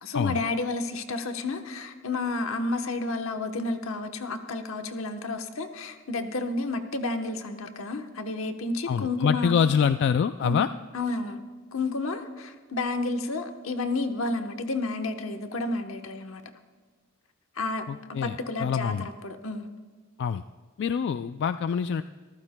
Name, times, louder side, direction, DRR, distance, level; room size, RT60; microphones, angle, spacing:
voice 1, 0.0-9.6 10.4-10.6 10.9-11.4 11.7-16.4 17.6-19.7, left 2 dB, 85° left, 6 dB, 1.0 m, -31 dB
voice 2, 8.9-10.7 17.9-19.1 20.2-20.4 20.8-22.0, left 7 dB, 60° left, 11 dB, 0.3 m, -25 dB
26.0 x 14.5 x 2.2 m, 1.5 s
head